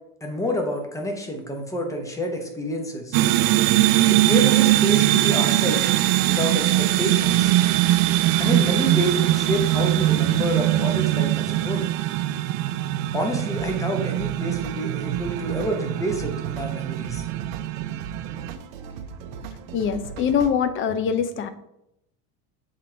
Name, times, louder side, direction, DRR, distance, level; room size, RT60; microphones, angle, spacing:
voice 1, 0.2-3.2 4.1-5.9 6.3-7.5 8.4-11.8 13.1-17.2, equal, 10° left, 2 dB, 1.0 m, -28 dB
sound 1, 3.1-18.5, right 15 dB, 60° right, 0.5 m, -21 dB
sound 2, 13.5-20.5, right 6 dB, 85° right, 0.8 m, -38 dB
voice 2, 19.7-21.5, left 7 dB, 30° left, 10 dB, 0.5 m, -23 dB
7.3 x 3.7 x 4.5 m, 0.81 s
cardioid pair, 150°, 38 cm